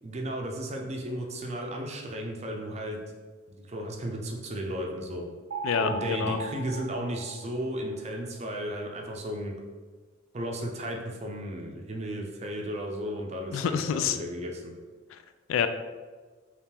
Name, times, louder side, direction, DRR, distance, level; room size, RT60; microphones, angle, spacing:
voice 1, 0.0-3.0 3.5-5.2 5.8-9.5 10.3-14.7, equal, 35° right, 1 dB, 0.5 m, -34 dB
sound 1, 5.5-8.0, right 2 dB, 75° right, 0.6 m, -37 dB
voice 2, 5.6-6.4 13.5-14.2 15.1-15.2 15.5-15.7, left 7 dB, 75° left, 10 dB, 0.3 m, -27 dB
3.5 x 2.4 x 4.3 m, 1.4 s
head